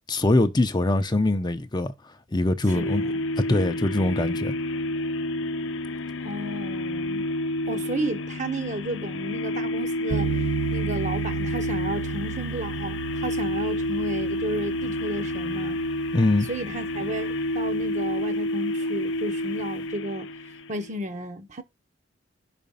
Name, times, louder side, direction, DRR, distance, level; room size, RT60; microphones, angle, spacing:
voice 1, 0.1-1.9 2.3-3.0 3.4-4.5 16.1-16.5, left 2 dB, 20° left, 0.6 m, -22 dB
sound 1, 2.7-20.9, left 1 dB, 75° left, 0.6 m, -29 dB
voice 2, 2.7-3.2 6.2-7.2 7.7-10.3 10.7-15.8 16.5-20.3 20.7-21.6, right 1 dB, 40° right, 0.9 m, -33 dB
sound 2, 10.1-18.3, right 7 dB, 60° right, 0.6 m, -34 dB
5.7 x 5.1 x 5.5 m
head